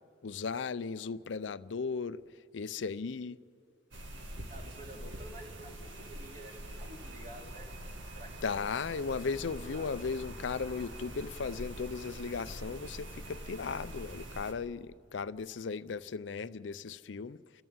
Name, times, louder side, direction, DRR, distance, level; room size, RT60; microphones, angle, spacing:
voice 1, 0.2-2.2 2.5-3.4 8.4-17.6, left 5 dB, 75° left, 0.5 m, -36 dB
sound 1, 3.9-14.5, right 1 dB, 85° right, 2.0 m, -45 dB
voice 2, 4.5-7.7 8.1-8.6 9.6-9.9, right 1 dB, 45° right, 3.3 m, -50 dB
28.5 x 14.0 x 8.9 m
head